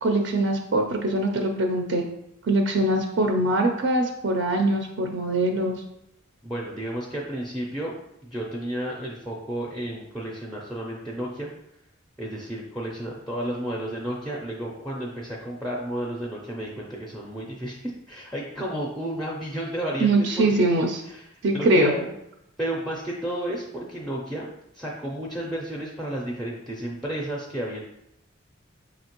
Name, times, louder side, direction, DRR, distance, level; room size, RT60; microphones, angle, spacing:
voice 1, 0.0-2.0 2.4-5.8 20.0-21.0 21.4-21.9, right 2 dB, 60° right, 3 dB, 0.4 m, -22 dB
voice 2, 6.4-7.9 8.2-11.5 12.2-20.7 21.0-22.1 22.6-24.5 24.7-27.8, right 1 dB, ahead, -2 dB, 0.4 m, -32 dB
5.0 x 2.8 x 2.9 m, 0.82 s
head